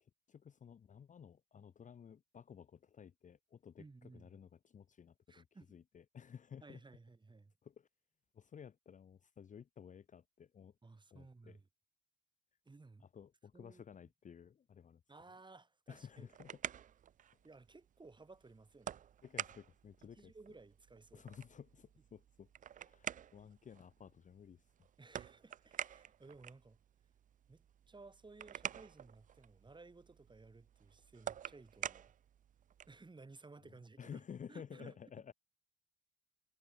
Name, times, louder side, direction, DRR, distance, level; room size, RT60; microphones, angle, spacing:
voice 1, 0.0-6.8 7.6-7.9 8.3-10.7 11.1-11.6 13.0-15.0 15.9-16.6 19.2-20.3 21.1-22.5 22.8-24.6 34.0-35.3, left 7 dB, 40° left, 0.7 m, -54 dB
voice 2, 3.8-4.3 5.3-5.8 6.6-7.5 10.8-11.7 12.7-13.1 13.5-13.8 15.1-16.3 17.4-18.9 20.1-21.3 25.0-26.8 27.5-32.1 32.9-34.2 34.5-35.0, right 3 dB, 25° right, 7.9 m, -58 dB
sound 1, 16.0-33.1, right 9 dB, 40° right, 0.4 m, -49 dB
cardioid pair, 90°, 20 cm